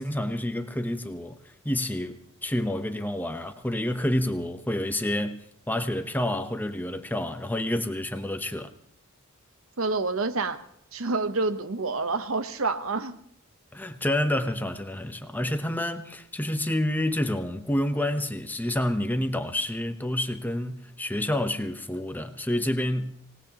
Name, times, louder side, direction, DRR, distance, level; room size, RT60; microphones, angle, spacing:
voice 1, 0.0-8.7 13.7-23.1, left 1 dB, 10° left, 0.8 m, -29 dB
voice 2, 9.8-10.6 10.9-13.2, right 3 dB, 65° right, 1.0 m, -28 dB
26.0 x 18.5 x 2.9 m
head